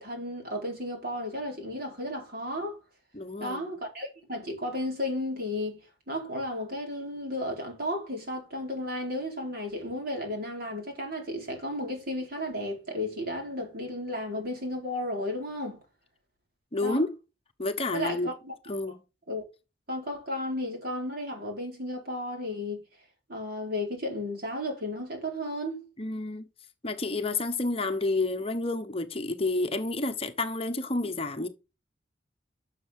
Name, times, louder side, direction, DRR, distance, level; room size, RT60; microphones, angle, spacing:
voice 1, 0.0-2.8 3.4-5.8 6.1-15.8 16.8-17.0 17.9-18.5 18.9-19.0 19.3-19.4 19.9-22.8 23.3-25.8, left 1 dB, 50° right, 4.4 m, -33 dB
voice 2, 3.1-3.6 16.7-17.1 17.6-18.3 18.7-19.0 26.0-26.4 26.8-31.5, left 2 dB, 30° left, 1.0 m, -29 dB
12.0 x 6.6 x 3.6 m
head